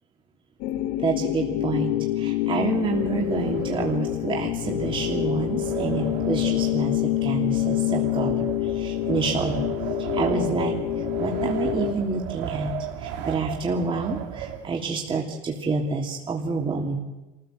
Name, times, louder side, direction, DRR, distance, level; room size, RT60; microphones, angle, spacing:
sound 1, 0.6-11.9, left 15 dB, 80° left, 1.3 m, -27 dB
voice 1, 1.0-8.5 8.7-9.6 10.0-10.8 11.2-12.7 13.0-17.0, right 4 dB, 35° right, -1 dB, 3.1 m, -28 dB
Wind, 2.5-15.1, right 8 dB, 90° right, 3.2 m, -35 dB
26.0 x 15.5 x 7.7 m, 1.1 s
supercardioid pair, 105°, 16 cm